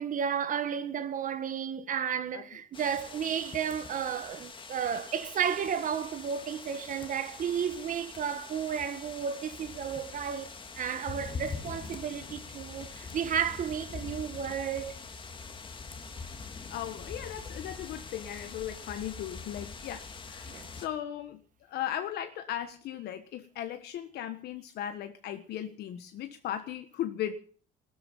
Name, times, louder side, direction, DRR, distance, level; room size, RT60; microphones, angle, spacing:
voice 1, 0.0-10.5 10.7-14.9 20.5-20.7, right 8 dB, 50° right, 1.5 m, -33 dB
sound 1, 2.7-20.9, left 4 dB, 30° left, 2.3 m, -44 dB
voice 2, 16.7-27.3, left 11 dB, 75° left, 1.4 m, -37 dB
17.0 x 13.5 x 5.6 m
cardioid pair, 110°, 17 cm